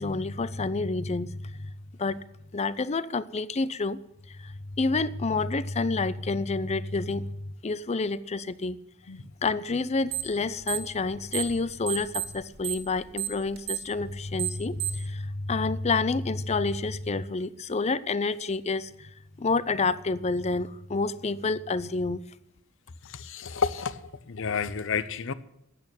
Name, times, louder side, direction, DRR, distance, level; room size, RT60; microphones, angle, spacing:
voice 1, 0.0-1.7 2.0-2.2 2.5-4.0 4.3-8.8 9.4-19.1 19.4-22.2, left 3 dB, 30° left, 0.5 m, -29 dB
sound 1, 10.1-10.4 10.6-11.6 11.9-15.1, right 15 dB, 50° right, 2.1 m, -31 dB
voice 2, 23.0-24.0 24.3-25.3, left 6 dB, 65° left, 0.7 m, -30 dB
13.0 x 8.4 x 9.1 m
head